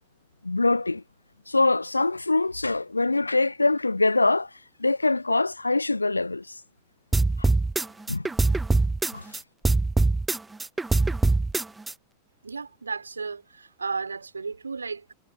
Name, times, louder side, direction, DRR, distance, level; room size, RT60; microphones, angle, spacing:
voice 1, 0.4-1.0 1.5-4.5 4.8-6.6 7.4-7.5 8.1-8.3 9.1-9.2, left 2 dB, 80° left, 0.3 m, -23 dB
sound 1, 7.1-9.4 9.6-11.9, right 3 dB, 10° right, 0.7 m, -22 dB
voice 2, 12.4-15.1, right 4 dB, 75° right, 3.3 m, -34 dB
figure-of-eight pair, 90°, 0 cm